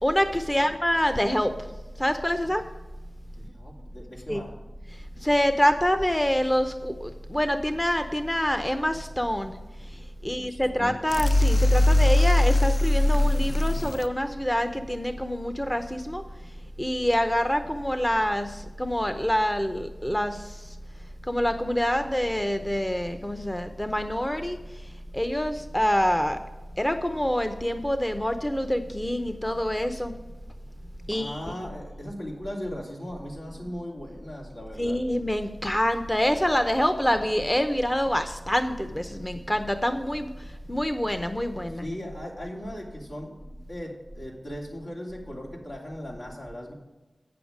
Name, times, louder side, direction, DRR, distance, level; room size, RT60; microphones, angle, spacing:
voice 1, 0.0-1.5 2.0-2.6 4.3-4.4 5.2-9.6 10.2-16.2 16.8-20.5 21.3-24.6 25.1-26.4 26.8-30.1 31.1-31.4 34.8-40.3 40.7-41.8, equal, 15° left, 8 dB, 0.6 m, -26 dB
voice 2, 3.4-4.5 10.2-10.9 31.1-35.0 41.7-43.3 43.7-46.7, equal, 80° left, -3 dB, 2.8 m, -38 dB
sound 1, 11.1-14.1, left 1 dB, 55° left, 0.5 m, -20 dB
8.7 x 6.9 x 5.0 m, 1.2 s
wide cardioid pair, 50°, 0 cm